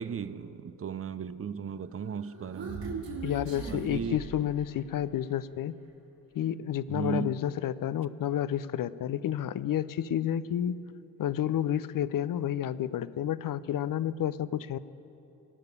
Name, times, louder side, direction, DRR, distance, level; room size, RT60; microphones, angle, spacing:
voice 1, 0.0-3.3 3.7-4.2 6.9-7.4, right 6 dB, 35° right, 0.6 m, -36 dB
Human voice, 2.0-5.0, right 3 dB, 60° right, 2.7 m, -40 dB
voice 2, 3.2-5.7 6.3-10.8 11.2-14.8, left 10 dB, 55° left, 0.6 m, -30 dB
17.5 x 6.6 x 9.8 m
supercardioid pair, 45°, 40 cm